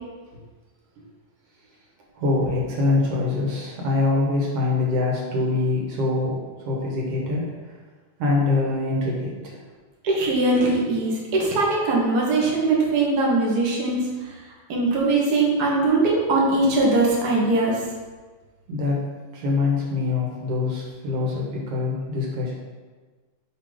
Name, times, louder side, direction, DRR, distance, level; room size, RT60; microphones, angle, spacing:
voice 1, 2.1-7.7 8.2-9.6 18.7-19.0 19.3-22.6, left 3 dB, 60° right, -3 dB, 1.9 m, -24 dB
voice 2, 10.0-14.0 14.7-17.8, right 2 dB, 85° right, -4 dB, 0.8 m, -21 dB
7.5 x 3.6 x 5.1 m, 1.4 s
omnidirectional pair, 3.8 m